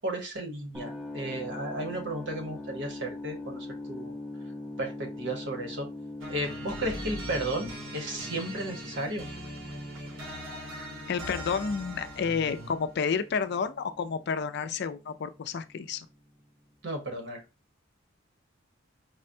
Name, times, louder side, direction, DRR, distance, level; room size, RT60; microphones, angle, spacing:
voice 1, 0.0-4.1 4.8-5.9 6.3-7.7 7.9-9.2 16.8-17.4, right 1 dB, 60° right, 1.0 m, -34 dB
sound 1, 0.7-16.7, left 2 dB, 5° right, 0.5 m, -43 dB
sound 2, 6.2-12.9, right 1 dB, 80° right, 1.3 m, -41 dB
voice 2, 11.1-16.1, left 6 dB, 55° left, 0.4 m, -30 dB
4.8 x 2.2 x 2.6 m
head